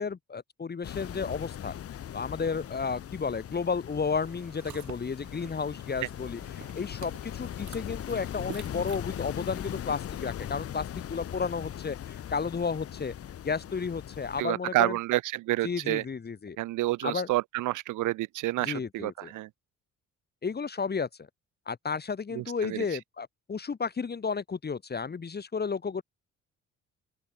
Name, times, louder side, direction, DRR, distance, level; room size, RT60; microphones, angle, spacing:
voice 1, 0.0-1.7 2.1-13.1 13.4-15.0 15.6-16.6 17.0-17.3 18.6-19.3 20.4-21.3 21.7-26.0, left 5 dB, 35° left, 1.9 m, -32 dB
sound 1, 0.8-14.4, left 10 dB, 50° left, 0.9 m, -39 dB
sound 2, 4.2-9.8, right 11 dB, 65° right, 4.4 m, -49 dB
voice 2, 14.4-16.0 16.6-19.5 22.3-22.8, right 17 dB, 85° right, 0.8 m, -29 dB
open air
cardioid pair, 90°, 30 cm